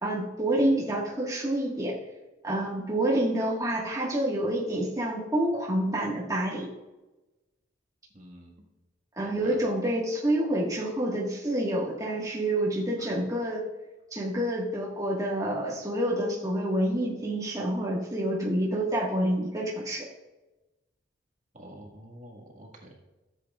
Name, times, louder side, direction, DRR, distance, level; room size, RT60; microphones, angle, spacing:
voice 1, 0.0-2.0 2.4-6.7 9.2-13.6 14.1-20.1, right 1 dB, 20° right, -5 dB, 1.5 m, -28 dB
voice 2, 8.1-8.6 9.2-9.6 13.0-13.1 21.5-22.9, right 1 dB, 40° right, -1 dB, 1.6 m, -47 dB
14.0 x 7.8 x 2.4 m, 1.1 s
head